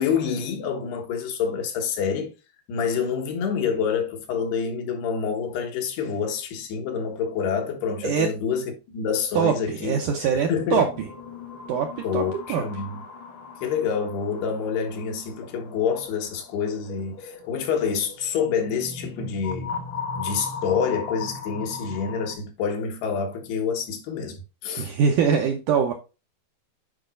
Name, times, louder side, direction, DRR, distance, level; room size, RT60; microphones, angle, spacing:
voice 1, 0.0-2.3 2.7-10.0 10.5-10.9 12.0-13.0 13.6-19.7 20.2-24.9, left 6 dB, 80° left, 3.4 m, -27 dB
voice 2, 9.4-10.9 11.7-12.6 24.8-25.9, right 7 dB, 80° right, 1.8 m, -23 dB
sound 1, 9.9-22.4, left 4 dB, 55° left, 1.4 m, -38 dB
8.9 x 4.9 x 2.5 m
omnidirectional pair, 4.6 m